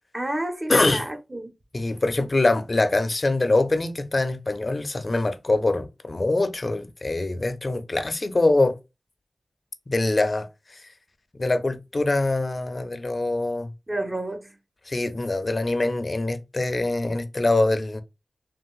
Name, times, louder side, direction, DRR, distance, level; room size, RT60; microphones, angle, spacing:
voice 1, 0.1-1.5 13.9-14.5, right 1 dB, 30° right, 1.1 m, -30 dB
voice 2, 0.7-1.0 1.7-8.8 9.9-10.8 11.3-13.7 14.9-18.0, left 2 dB, 50° left, 0.5 m, -24 dB
3.4 x 2.4 x 2.3 m
cardioid pair, 45°, 0 cm